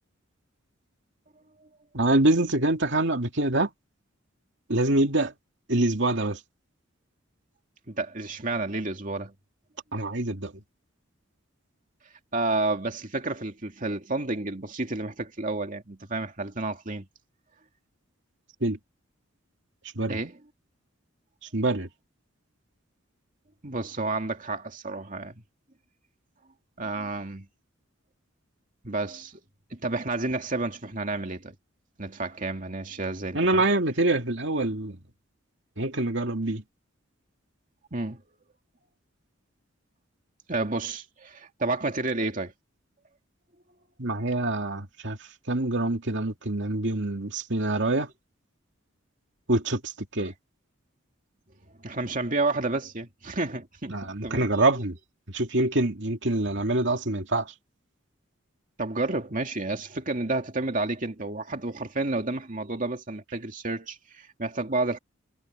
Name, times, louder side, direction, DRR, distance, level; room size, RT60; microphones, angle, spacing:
voice 1, 1.9-3.7 4.7-5.3 5.7-6.4 9.9-10.5 18.6-18.8 20.0-20.2 21.4-21.9 33.3-35.0 35.8-36.6 44.0-48.1 49.5-50.3 53.9-55.0 55.3-57.5, right 2 dB, 65° right, 2.6 m, -25 dB
voice 2, 7.9-9.3 12.3-17.1 20.1-20.3 23.6-25.3 26.8-27.5 28.8-29.4 29.7-31.6 32.0-33.7 37.9-38.2 40.5-42.5 51.8-54.6 58.8-65.0, right 2 dB, 40° right, 2.5 m, -30 dB
head